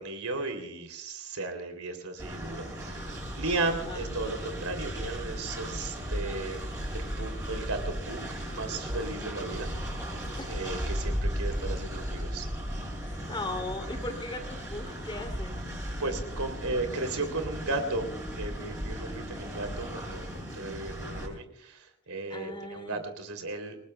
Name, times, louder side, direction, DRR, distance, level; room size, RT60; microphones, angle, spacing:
voice 1, 0.0-6.6 6.9-8.2 8.5-9.7 10.5-12.5 16.0-18.1 18.4-23.8, right 2 dB, 75° right, 7 dB, 3.1 m, -35 dB
Train, 2.2-21.3, equal, 15° right, 7.0 m, -36 dB
voice 2, 3.8-4.3 10.4-10.5 13.1-15.7 22.3-23.0, left 2 dB, 20° left, 5 dB, 3.0 m, -38 dB
28.5 x 20.0 x 2.3 m, 0.74 s
head